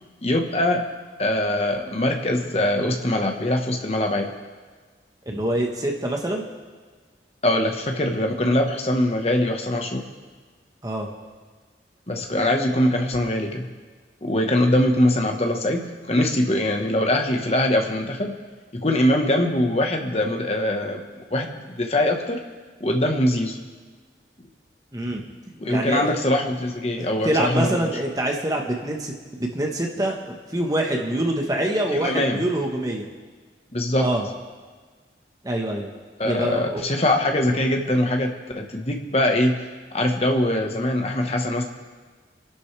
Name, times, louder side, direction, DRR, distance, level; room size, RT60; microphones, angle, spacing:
voice 1, 0.2-0.8 1.2-4.3 7.4-10.0 12.1-13.7 14.2-18.3 18.7-21.0 21.3-22.4 22.8-23.6 25.6-27.8 32.0-32.4 33.7-34.1 36.2-39.6 39.9-41.6, left 1 dB, 35° left, 3 dB, 1.4 m, -22 dB
voice 2, 5.2-6.4 10.8-11.1 24.9-25.2 25.7-26.1 27.0-33.1 34.0-34.3 35.4-35.9 36.2-36.8, right 1 dB, 20° right, 1 dB, 1.3 m, -25 dB
26.5 x 11.5 x 3.5 m, 1.5 s
head